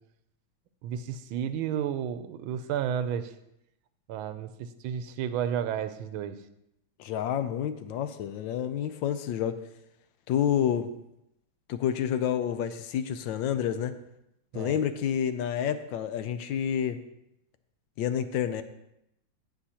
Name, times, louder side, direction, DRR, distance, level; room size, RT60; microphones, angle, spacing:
voice 1, 0.8-3.3 4.1-6.4 14.5-14.8, right 9 dB, 90° right, 11 dB, 1.5 m, -32 dB
voice 2, 7.0-9.6 10.3-10.9 11.7-13.9 14.5-17.0 18.0-18.6, left 9 dB, 75° left, 10 dB, 1.2 m, -29 dB
17.0 x 6.2 x 2.9 m, 0.82 s
omnidirectional pair, 2.2 m